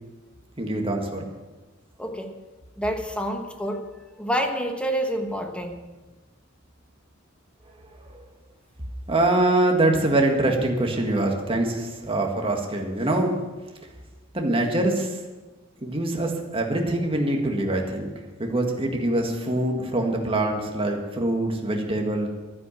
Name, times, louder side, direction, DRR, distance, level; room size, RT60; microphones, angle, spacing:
voice 1, 0.6-1.2 8.1-8.2 9.1-13.3 14.3-15.2 15.8-18.1 18.4-22.3, right 1 dB, 25° right, 2 dB, 1.9 m, -24 dB
voice 2, 2.0-2.3 2.8-3.9 4.2-5.8, equal, 5° left, 5 dB, 1.2 m, -28 dB
12.0 x 9.5 x 7.4 m, 1.2 s
head